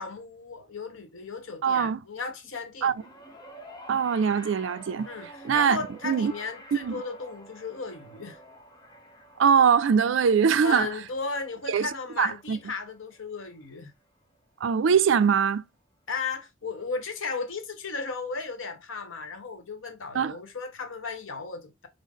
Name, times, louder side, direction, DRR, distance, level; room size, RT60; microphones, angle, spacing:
voice 1, 0.0-2.9 5.1-8.4 10.6-13.9 16.1-21.9, left 4 dB, 90° left, 1.0 m, -35 dB
voice 2, 1.6-2.0 2.8-2.9 3.9-5.1 5.4-5.8 6.0-6.3 6.8-7.0 9.4-10.9 11.7-11.9 12.2-12.6 14.6-15.6 20.1-20.3, right 7 dB, 70° right, 0.4 m, -22 dB
sound 1, 2.9-13.3 14.4-14.5, equal, 20° left, 0.9 m, -49 dB
5.2 x 2.0 x 3.6 m
head